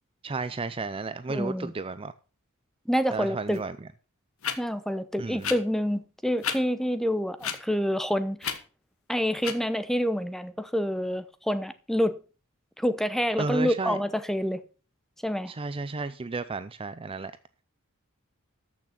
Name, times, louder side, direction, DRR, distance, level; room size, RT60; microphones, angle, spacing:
voice 1, 0.2-2.1 3.1-3.7 5.2-5.5 13.4-14.0 15.5-17.3, right 3 dB, 25° right, 0.5 m, -33 dB
voice 2, 1.3-1.7 2.9-3.6 4.6-8.6 9.1-12.2 12.8-14.6 15.2-15.5, equal, ahead, 0.8 m, -27 dB
sound 1, 3.5-3.6 4.4-4.6 5.4-5.5 6.4-6.6 7.4-7.6 8.4-8.6 9.4-9.5, left 8 dB, 75° left, 1.4 m, -30 dB
13.5 x 6.2 x 5.9 m
head